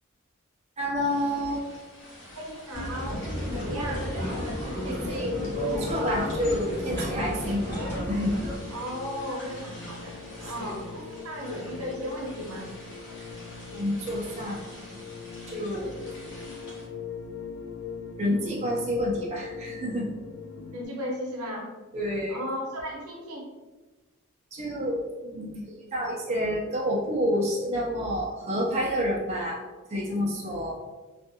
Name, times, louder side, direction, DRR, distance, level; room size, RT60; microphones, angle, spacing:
voice 1, 0.8-1.6 4.8-7.6 8.1-8.5 10.6-10.7 13.7-14.6 15.5-16.1 18.2-20.1 21.9-22.4 24.5-29.6 29.9-30.8, equal, 30° right, -3 dB, 0.4 m, -29 dB
sound 1, 1.0-16.9, left 1 dB, 60° left, 1.0 m, -47 dB
voice 2, 2.4-4.1 8.7-12.7 20.7-21.7 22.3-23.5, equal, 90° right, -1 dB, 0.7 m, -35 dB
sound 2, 2.7-8.6, equal, 10° left, 1.1 m, -32 dB
sound 3, 3.3-20.9, left 5 dB, 85° left, 0.4 m, -40 dB
2.5 x 2.4 x 2.6 m, 1.2 s
head